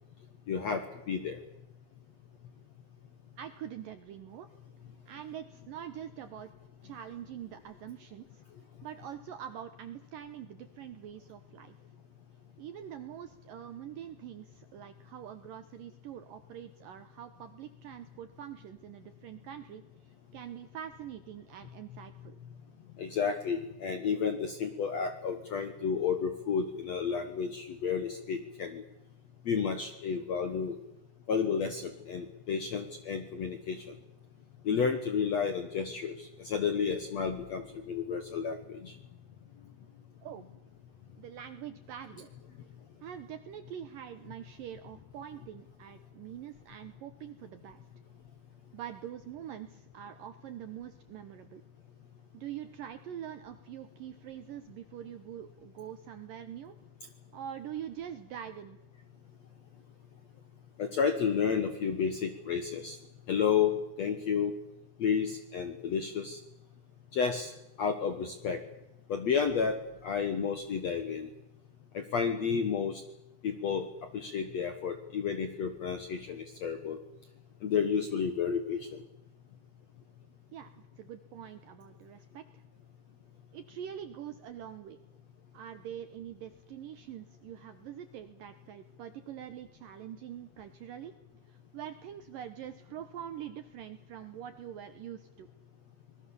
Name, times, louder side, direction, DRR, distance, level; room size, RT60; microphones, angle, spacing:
voice 1, 0.5-1.4 23.0-28.8 29.4-30.8 31.3-33.9 34.6-38.9 60.8-63.0 63.3-64.5 65.0-66.4 67.1-67.5 67.8-68.6 69.1-69.7 70.0-71.3 71.9-73.0 73.4-73.9 74.1-77.0 77.6-79.0, left 6 dB, 75° left, 8 dB, 1.6 m, -31 dB
voice 2, 3.4-4.5 5.1-6.5 6.8-8.4 8.8-11.8 12.6-22.4 40.2-40.5 41.2-42.3 43.0-47.8 48.7-51.6 52.3-56.8 57.3-58.8 63.7-63.8 69.6-69.8 80.5-82.6 83.5-85.0 85.5-91.2 91.5-95.5, right 10 dB, 75° right, 10 dB, 2.1 m, -44 dB
25.5 x 21.0 x 7.1 m, 0.90 s
omnidirectional pair, 5.1 m